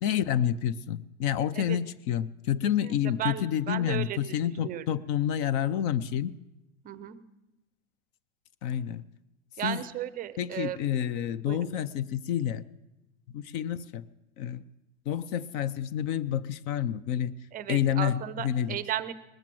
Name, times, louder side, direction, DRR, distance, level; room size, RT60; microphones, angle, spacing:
voice 1, 0.0-6.3 8.6-9.1 9.6-9.8 10.4-12.6 13.3-14.0 14.4-14.6 15.1-17.4 17.7-18.7, left 10 dB, 45° left, 18 dB, 0.6 m, -29 dB
voice 2, 2.6-4.4 4.6-5.0 6.8-7.2 9.6-10.8 11.4-11.8 17.5-19.1, right 12 dB, 25° right, 13 dB, 0.6 m, -35 dB
20.0 x 7.3 x 7.6 m, 0.98 s
supercardioid pair, 135°, 36 cm